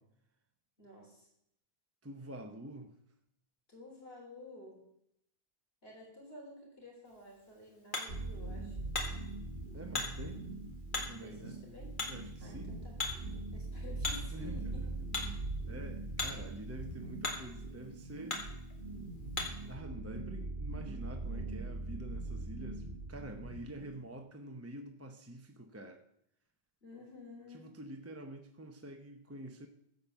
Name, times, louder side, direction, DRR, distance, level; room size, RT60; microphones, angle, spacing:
voice 1, 0.8-1.3 3.7-4.8 5.8-8.9 11.2-12.0 12.4-13.1 13.5-15.0 26.8-27.7, left 2 dB, 65° left, -2 dB, 4.3 m, -52 dB
voice 2, 2.0-2.9 9.7-10.5 11.1-11.5 12.1-12.7 14.3-14.9 15.7-18.4 19.7-22.8 23.1-26.0 27.5-29.7, right 1 dB, 15° right, 5 dB, 0.8 m, -47 dB
Hammer, 7.1-19.7, left 3 dB, 50° left, 2.2 m, -43 dB
sound 1, 8.1-24.0, right 2 dB, 60° right, 1.4 m, -42 dB
14.5 x 5.3 x 7.2 m, 0.74 s
omnidirectional pair, 1.1 m